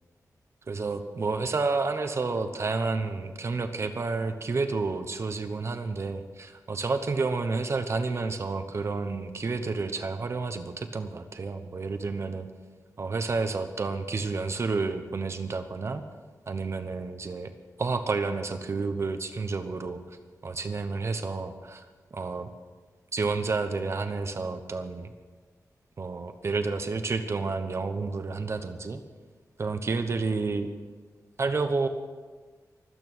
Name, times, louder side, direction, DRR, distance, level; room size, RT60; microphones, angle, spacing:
voice 1, 0.7-12.5 13.0-16.0 16.5-17.5 17.8-21.9 22.1-22.5 23.1-25.1 26.0-29.0 29.6-30.7 31.4-31.9, right 4 dB, 45° right, 8 dB, 0.9 m, -30 dB
23.5 x 9.1 x 6.3 m, 1.4 s
wide cardioid pair, 150°, 6 cm